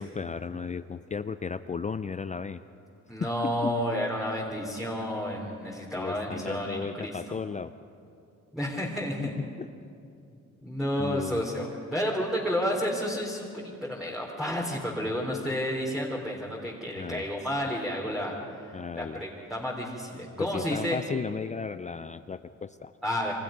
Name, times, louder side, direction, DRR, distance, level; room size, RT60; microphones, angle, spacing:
voice 1, 0.0-2.6 3.2-3.7 5.9-7.7 9.2-9.7 11.0-11.4 17.0-17.3 18.7-19.2 20.4-22.9, left 5 dB, 25° left, 11 dB, 0.5 m, -35 dB
voice 2, 3.1-7.4 8.5-9.3 10.6-18.4 18.6-21.0 23.0-23.3, equal, ahead, -4 dB, 3.9 m, -31 dB
29.0 x 24.5 x 5.3 m, 2.6 s
cardioid pair, 90°, 30 cm